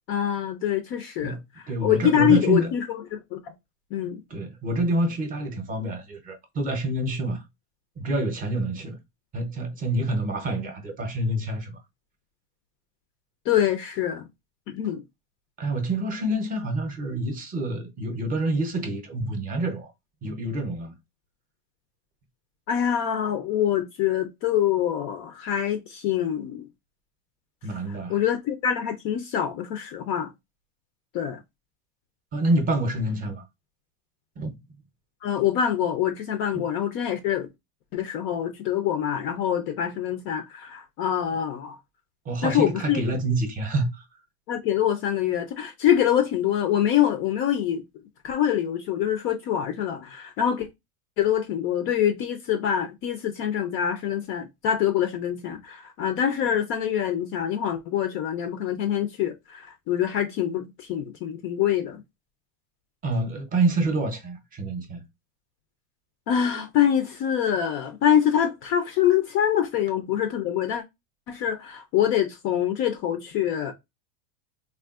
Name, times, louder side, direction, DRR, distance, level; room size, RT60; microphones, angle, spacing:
voice 1, 0.1-1.4 1.8-3.4 3.9-4.2 13.5-14.3 14.7-15.0 22.7-26.7 27.9-30.3 31.1-31.4 35.2-37.5 37.9-41.8 42.4-43.0 44.5-47.8 48.2-50.7 51.2-62.0 66.3-70.8 71.3-73.7, left 10 dB, 35° left, 0.4 m, -25 dB
voice 2, 1.7-2.7 4.3-7.4 8.0-9.0 9.3-11.8 15.6-19.9 20.2-20.9 27.6-28.2 32.3-33.4 34.4-34.6 36.5-36.6 42.3-44.0 63.0-65.0, right 2 dB, 20° right, 0.7 m, -27 dB
3.5 x 2.3 x 2.3 m
supercardioid pair, 140°, 38 cm